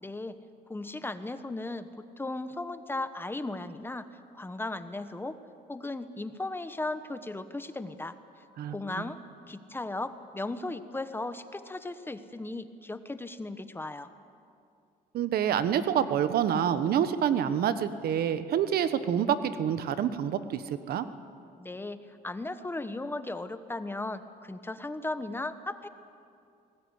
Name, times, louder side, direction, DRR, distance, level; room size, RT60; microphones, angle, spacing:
voice 1, 0.0-0.4 0.7-4.1 4.3-5.4 5.7-8.2 8.7-9.2 9.5-14.1 21.6-25.9, left 2 dB, 15° left, 11 dB, 1.1 m, -36 dB
voice 2, 15.1-21.0, right 9 dB, 65° right, 12 dB, 1.2 m, -27 dB
22.5 x 19.0 x 9.7 m, 2.5 s
cardioid pair, 110°, 17 cm